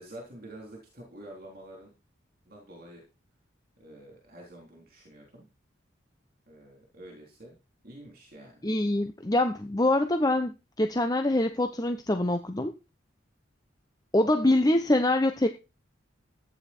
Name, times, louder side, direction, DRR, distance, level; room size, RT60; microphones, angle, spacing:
voice 1, 0.0-1.9 2.5-3.0 3.8-5.5 6.5-7.5 7.8-8.6 14.2-14.4, right 1 dB, 45° right, 0 dB, 3.7 m, -48 dB
voice 2, 8.6-12.7 14.1-15.5, left 1 dB, 20° left, 7 dB, 0.8 m, -25 dB
14.5 x 9.4 x 4.4 m, 0.30 s
head